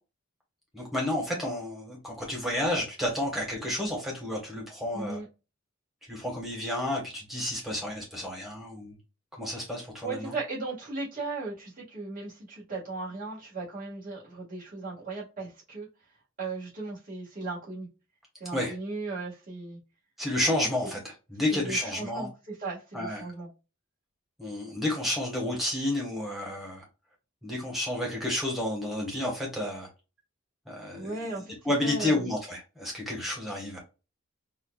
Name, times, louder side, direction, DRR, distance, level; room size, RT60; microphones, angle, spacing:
voice 1, 0.7-5.2 6.1-9.0 9.4-10.3 18.5-18.7 20.2-22.3 22.9-23.3 24.4-26.8 27.4-29.9 30.7-33.8, left 1 dB, ahead, 1.3 m, -31 dB
voice 2, 4.9-5.3 10.0-15.9 16.4-17.9 18.4-19.8 20.8-20.9 21.5-23.5 30.9-32.3, right 3 dB, 40° right, 1.9 m, -37 dB
4.4 x 2.5 x 2.4 m
head